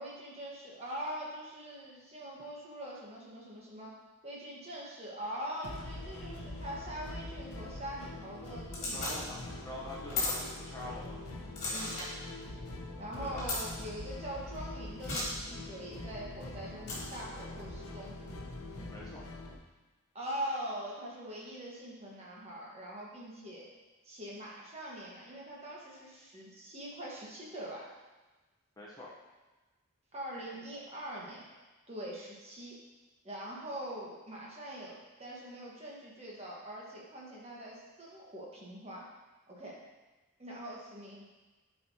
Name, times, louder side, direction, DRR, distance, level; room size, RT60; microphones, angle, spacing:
voice 1, 0.0-4.0 4.2-9.2 11.7-12.0 13.0-18.1 20.1-23.7 24.0-27.9 30.1-31.5 31.9-32.8 33.2-39.1 39.5-39.8 40.4-41.2, right 1 dB, 30° right, -4 dB, 1.3 m, -43 dB
sound 1, 5.6-19.6, left 2 dB, 85° left, 0.8 m, -44 dB
sound 2, 8.7-9.1 10.1-10.4 11.6-12.1 13.4-13.6 15.0-15.2 16.8-17.2, left 3 dB, 30° left, 2.1 m, -34 dB
voice 2, 8.9-9.4 9.6-11.2 13.2-13.6 18.9-19.2 28.8-29.1, left 2 dB, 15° left, -6 dB, 0.8 m, -45 dB
9.4 x 4.6 x 2.8 m, 1.2 s
head